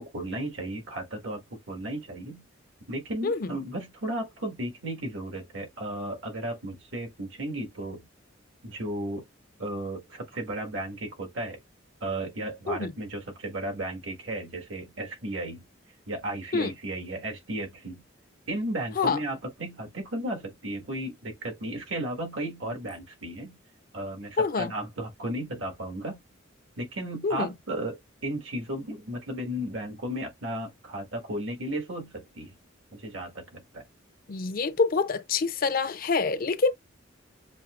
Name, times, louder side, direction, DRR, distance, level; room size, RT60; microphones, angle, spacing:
voice 1, 0.0-2.4 2.9-8.1 8.6-9.2 9.6-11.6 12.0-15.7 16.1-18.0 18.5-23.6 23.9-26.2 26.8-32.6 32.9-33.8, right 1 dB, 80° right, 1.5 m, -34 dB
voice 2, 3.2-3.6 12.7-12.9 16.5-16.7 19.0-19.2 24.4-24.7 27.2-27.5 34.3-36.7, left 4 dB, 50° left, 0.5 m, -26 dB
7.0 x 2.8 x 2.4 m
head